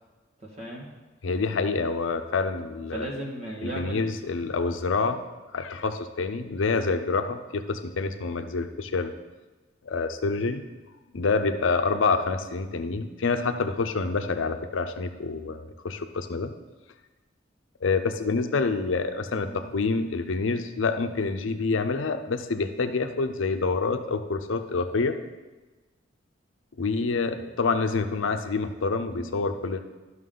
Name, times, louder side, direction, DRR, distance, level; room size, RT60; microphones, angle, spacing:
voice 1, 0.4-0.9 2.9-4.0 19.4-19.7 29.1-29.4, right 1 dB, 35° right, -1 dB, 1.5 m, -36 dB
voice 2, 1.2-3.1 3.6-5.2 5.5-9.1 9.8-10.6 11.1-16.5 17.8-25.1 26.8-29.8, left 4 dB, 85° left, 7 dB, 0.6 m, -27 dB
11.0 x 5.9 x 3.8 m, 1.2 s
head